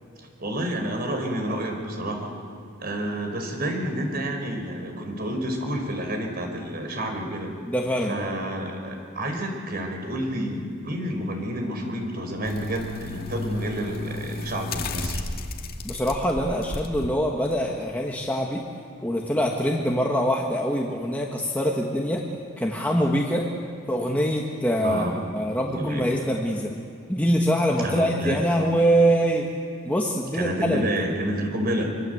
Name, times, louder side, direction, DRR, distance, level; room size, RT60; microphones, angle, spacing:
voice 1, 0.2-2.3 2.8-7.5 8.1-15.2 24.8-25.2 25.7-26.1 27.8-28.5 30.3-31.9, right 1 dB, 50° right, 3 dB, 4.9 m, -29 dB
voice 2, 7.7-8.2 15.8-18.6 19.0-22.2 22.6-23.5 23.9-26.7 27.1-29.5 29.8-30.9, equal, 10° left, -2 dB, 1.8 m, -24 dB
sound 1, 12.4-17.1 17.5-17.6, left 2 dB, 50° left, 2.1 m, -33 dB
26.0 x 25.0 x 8.1 m, 2.2 s
head